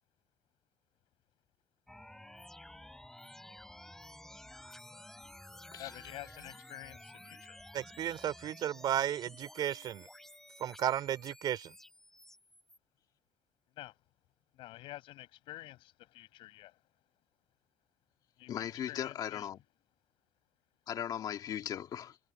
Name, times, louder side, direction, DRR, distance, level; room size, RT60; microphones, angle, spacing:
sound 1, 1.9-12.8, left 1 dB, 5° left, 7.3 m, -53 dB
voice 1, 5.8-7.6 13.8-13.9 14.5-16.7 18.4-19.5, left 16 dB, 85° left, 6.8 m, -49 dB
voice 2, 7.7-10.1 10.6-11.7, right 11 dB, 55° right, 3.0 m, -34 dB
voice 3, 18.5-19.6 20.9-22.2, left 10 dB, 50° left, 2.4 m, -38 dB
cardioid pair, 165°, 9 cm